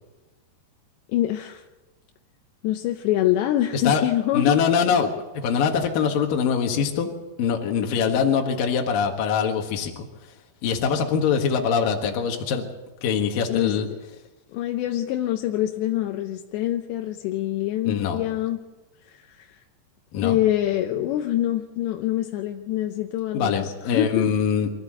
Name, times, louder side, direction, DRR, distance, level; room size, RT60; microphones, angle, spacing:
voice 1, 1.1-1.6 2.6-4.6 13.5-14.0 14.5-18.6 19.1-19.6 20.2-24.3, left 13 dB, 80° left, 4 dB, 3.0 m, -25 dB
voice 2, 3.7-4.0 4.3-5.1 5.3-7.1 7.4-10.1 10.6-12.7 13.0-13.9 17.8-18.2 20.1-20.4 23.3-24.7, left 6 dB, 60° left, 2 dB, 2.9 m, -23 dB
24.5 x 14.5 x 7.7 m, 1.1 s
omnidirectional pair, 5.2 m